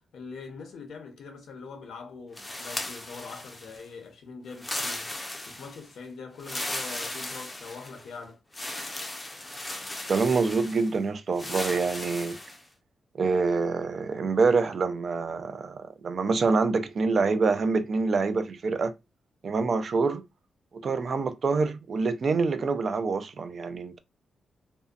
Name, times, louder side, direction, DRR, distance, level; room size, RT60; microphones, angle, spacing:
voice 1, 0.1-5.1 5.4-8.4, left 4 dB, 80° left, 0.7 m, -43 dB
Leave reed rustle, 2.4-3.9 4.5-5.9 6.4-8.1 8.5-10.9 11.4-12.6, left 1 dB, 15° left, 0.4 m, -36 dB
voice 2, 10.1-12.4 13.2-18.9 19.4-20.2 20.7-24.0, right 4 dB, 45° right, 0.3 m, -26 dB
2.6 x 2.1 x 2.4 m
wide cardioid pair, 135°, 0 cm